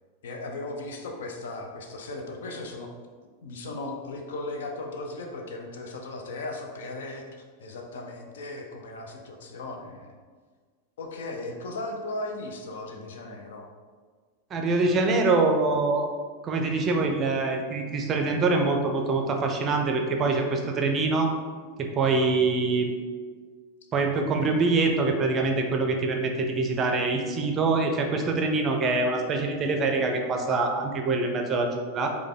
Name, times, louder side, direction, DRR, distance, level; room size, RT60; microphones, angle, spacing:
voice 1, 0.2-2.9 3.4-7.3 7.6-10.1 11.0-13.7, left 2 dB, 60° left, 2 dB, 0.5 m, -37 dB
voice 2, 14.5-16.1 16.4-21.3 21.8-23.0 23.9-32.2, right 3 dB, 25° right, 3 dB, 0.5 m, -24 dB
4.7 x 2.2 x 3.6 m, 1.5 s
figure-of-eight pair, 90°, 0 cm